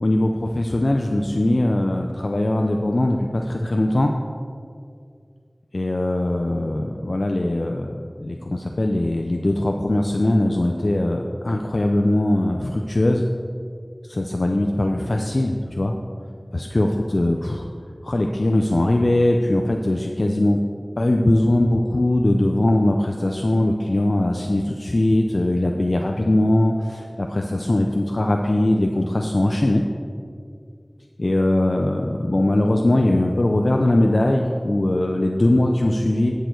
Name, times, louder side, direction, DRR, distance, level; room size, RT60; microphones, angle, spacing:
voice 1, 0.0-4.1 5.7-7.9 8.2-13.2 14.1-15.9 16.5-17.6 18.0-20.6 21.0-29.8 31.2-36.3, left 1 dB, 65° left, 2 dB, 0.5 m, -21 dB
10.0 x 6.6 x 4.5 m, 2.2 s
wide cardioid pair, 40°, 0 cm